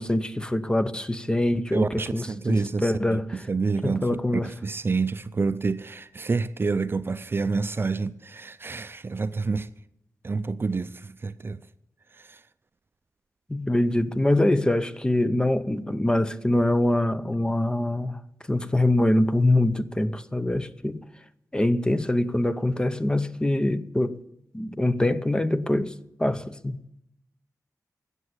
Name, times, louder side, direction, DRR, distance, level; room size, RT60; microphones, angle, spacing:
voice 1, 0.0-3.3 3.8-4.5 13.5-18.2 18.5-21.0 21.5-24.2 24.5-26.8, left 1 dB, 15° left, 0.7 m, -24 dB
voice 2, 1.7-4.1 4.4-9.7 10.2-11.6 12.1-12.4, right 4 dB, 35° right, 0.5 m, -28 dB
14.5 x 8.2 x 9.7 m
wide cardioid pair, 145°, 6 cm